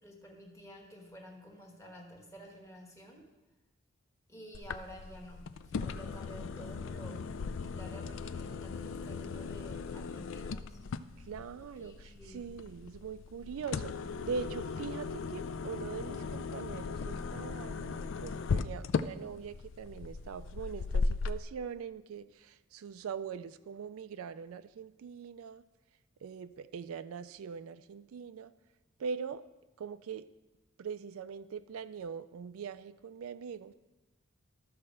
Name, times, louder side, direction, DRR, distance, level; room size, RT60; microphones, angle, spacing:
voice 1, 0.0-3.3 4.3-10.8 11.8-12.6 13.4-13.7, equal, 15° left, 0 dB, 1.4 m, -51 dB
sound 1, 4.5-21.4, left 4 dB, 60° left, 0.4 m, -37 dB
voice 2, 11.2-13.9 14.2-25.6 26.2-28.5 29.0-29.4 29.8-30.3 30.8-33.7, right 6 dB, 75° right, 13 dB, 0.3 m, -42 dB
13.0 x 4.3 x 6.3 m, 1.1 s
head